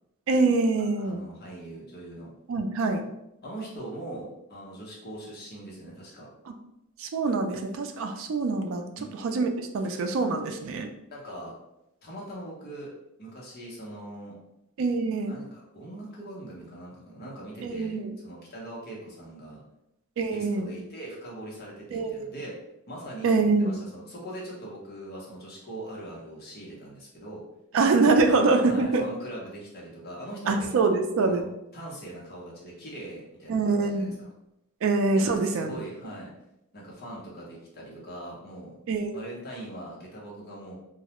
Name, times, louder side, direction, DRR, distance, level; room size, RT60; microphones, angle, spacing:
voice 1, 0.3-1.2 2.5-3.0 7.0-8.9 9.2-9.5 9.7-10.9 14.8-15.3 17.6-18.2 20.2-20.7 21.9-22.3 23.2-23.8 27.7-29.0 30.5-31.4 33.5-34.1 34.8-35.7 38.9-39.2, right 3 dB, 65° right, 5 dB, 0.3 m, -24 dB
voice 2, 1.0-2.3 3.4-6.3 9.0-9.1 11.1-11.5 12.0-12.9 13.2-14.4 15.3-19.6 20.3-22.5 22.9-27.4 28.3-31.5 31.7-34.1 35.1-36.3 36.7-38.7 39.1-40.7, right 1 dB, 45° left, -4 dB, 0.8 m, -41 dB
2.3 x 2.0 x 2.9 m, 0.84 s
head